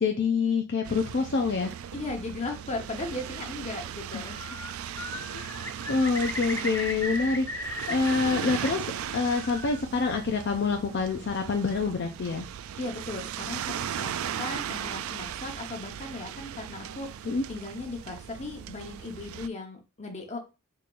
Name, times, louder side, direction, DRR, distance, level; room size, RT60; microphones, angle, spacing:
voice 1, 0.0-1.7 4.1-4.3 5.3-5.6 5.9-12.5 17.2-17.4, left 4 dB, 55° left, 3 dB, 0.5 m, -27 dB
sound 1, 0.8-19.5, right 9 dB, 70° right, 0.3 m, -37 dB
voice 2, 1.9-4.5 12.8-20.4, left 2 dB, 30° left, 3 dB, 0.9 m, -37 dB
Bird, 4.1-4.7 5.0-8.7 9.0-9.8, left 2 dB, 10° left, 0.6 m, -37 dB
4.4 x 3.8 x 2.5 m, 0.29 s
head